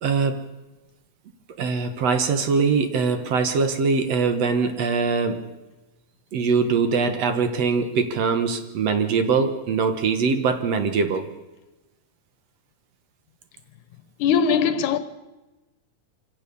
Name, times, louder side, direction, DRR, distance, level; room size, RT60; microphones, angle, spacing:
voice 1, 0.0-0.5 1.6-5.5 6.3-11.3, right 5 dB, 60° right, 2.5 m, -22 dB
voice 2, 14.2-15.0, left 7 dB, 90° left, 2.6 m, -20 dB
25.5 x 16.0 x 7.0 m
omnidirectional pair, 3.4 m